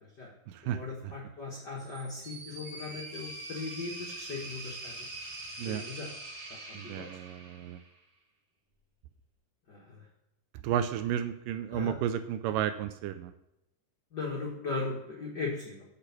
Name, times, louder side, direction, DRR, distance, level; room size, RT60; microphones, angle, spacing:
voice 1, 0.7-5.0 5.6-6.1 6.9-7.1 9.7-10.0 11.7-11.9 14.1-15.8, left 3 dB, 50° left, -4 dB, 1.2 m, -38 dB
sound 1, 1.8-8.0, right 2 dB, 45° right, 2.9 m, -43 dB
voice 2, 6.7-7.8 10.6-13.3, right 10 dB, 80° right, 10 dB, 2.1 m, -32 dB
7.9 x 6.8 x 5.9 m, 0.86 s
omnidirectional pair, 4.1 m